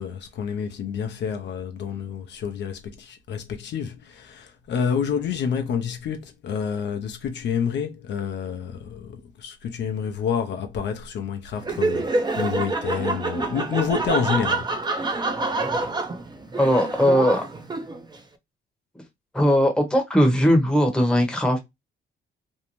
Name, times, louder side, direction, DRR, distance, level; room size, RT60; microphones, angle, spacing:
voice 1, 0.0-14.7, left 7 dB, 65° left, 0.5 m, -28 dB
Laughter, 11.6-18.2, right 3 dB, 20° right, 0.5 m, -27 dB
voice 2, 16.6-17.4 19.3-21.6, equal, 5° left, 0.8 m, -19 dB
2.6 x 2.1 x 2.9 m
cardioid pair, 90°, 20 cm